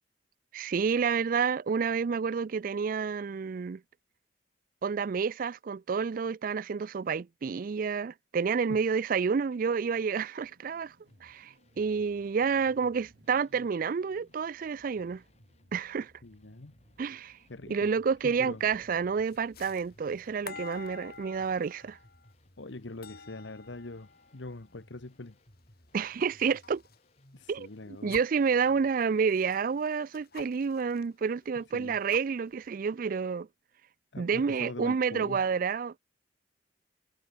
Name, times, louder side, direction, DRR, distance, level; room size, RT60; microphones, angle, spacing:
voice 1, 0.5-3.8 4.8-10.9 11.2-15.2 15.7-16.1 17.0-17.4 17.7-22.0 25.9-26.8 27.5-27.7 28.0-33.5 34.2-36.0, right 6 dB, 50° right, 0.4 m, -29 dB
sound 1, 10.4-19.4, right 1 dB, 65° right, 4.4 m, -65 dB
sound 2, 11.0-29.0, left 1 dB, 35° left, 4.3 m, -63 dB
voice 2, 16.2-16.7 17.5-17.9 18.2-18.6 22.6-25.4 27.3-28.2 31.7-32.0 34.1-35.4, left 2 dB, 85° left, 1.3 m, -43 dB
sound 3, 18.6-27.0 27.4-28.4 29.0-31.0 31.4-31.5 31.8-32.7, left 5 dB, 55° left, 2.5 m, -49 dB
head